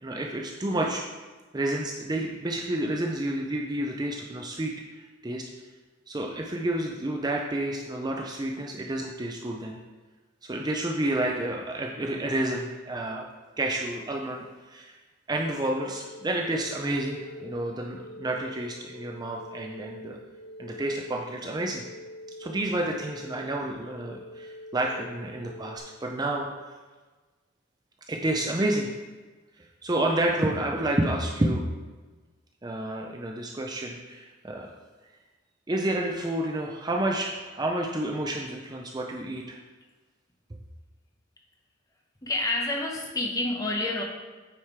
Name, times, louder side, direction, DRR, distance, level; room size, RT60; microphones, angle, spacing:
voice 1, 0.0-1.1 1.5-5.4 6.1-9.8 10.4-13.2 13.6-14.9 15.3-20.2 20.6-21.8 22.4-26.5 28.1-28.9 29.6-31.6 32.6-34.7 35.7-39.6, right 1 dB, 20° right, 0 dB, 0.5 m, -30 dB
sound 1, 15.8-25.8, left 1 dB, 45° left, 1.0 m, -45 dB
voice 2, 42.2-44.0, left 2 dB, 20° left, 0 dB, 1.1 m, -28 dB
8.9 x 4.9 x 4.6 m, 1.3 s
head